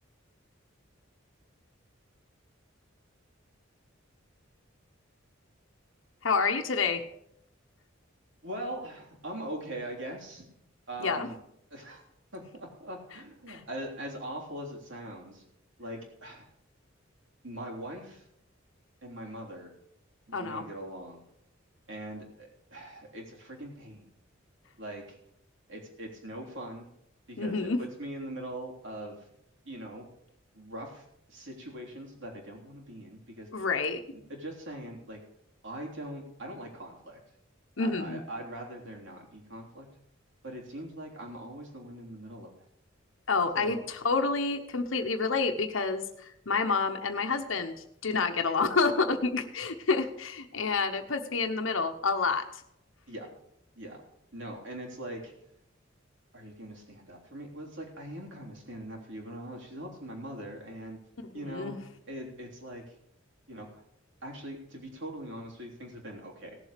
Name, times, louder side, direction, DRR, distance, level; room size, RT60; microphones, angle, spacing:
voice 1, 6.2-7.0 11.0-11.3 13.5-13.6 20.3-20.6 27.4-27.8 33.5-34.0 37.8-38.2 43.3-47.7 48.0-52.4 61.3-61.8, left 4 dB, 75° left, 5 dB, 1.0 m, -28 dB
voice 2, 8.4-10.5 10.9-11.3 11.7-12.0 12.3-15.4 15.8-16.5 17.4-18.3 19.0-19.7 20.3-21.2 21.9-24.1 24.8-25.2 25.7-26.9 27.3-29.2 29.6-30.1 30.5-33.5 34.1-35.2 35.6-37.2 37.8-39.9 40.4-42.5 43.5-43.8 53.1-53.3 53.7-54.0 54.3-55.3 56.3-61.0 61.3-61.8 62.1-63.0 63.5-63.8 64.2-66.6, right 1 dB, 65° right, -1 dB, 3.4 m, -41 dB
18.0 x 7.3 x 5.1 m, 0.76 s
head